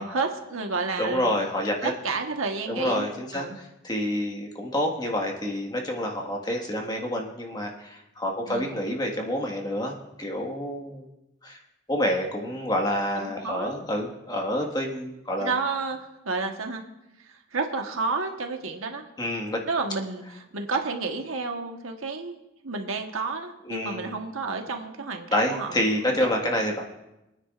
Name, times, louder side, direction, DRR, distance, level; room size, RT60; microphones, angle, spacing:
voice 1, 0.0-1.5 1.8-3.6 8.5-8.8 13.1-13.8 15.4-16.8 17.5-19.0 19.7-22.4 22.6-26.3 26.6-26.7, right 4 dB, 90° right, 3 dB, 1.3 m, -31 dB
voice 2, 1.0-1.9 2.7-11.1 11.4-11.6 11.9-15.5 19.2-19.6 23.6-24.1 25.3-26.8, left 1 dB, 20° left, 1 dB, 1.7 m, -28 dB
26.0 x 9.6 x 2.5 m, 0.93 s
head